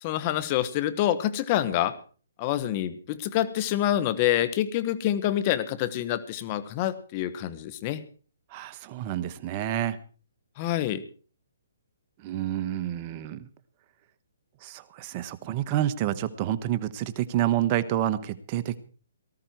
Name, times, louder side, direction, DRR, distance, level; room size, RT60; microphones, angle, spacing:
voice 1, 0.0-1.9 2.4-8.0 10.6-11.0, left 12 dB, 30° left, 14 dB, 1.5 m, -27 dB
voice 2, 8.5-10.0 12.2-13.5 14.6-18.8, right 12 dB, 30° right, 13 dB, 1.3 m, -28 dB
19.0 x 13.5 x 4.7 m, 0.40 s
hypercardioid pair, 150°, 0 cm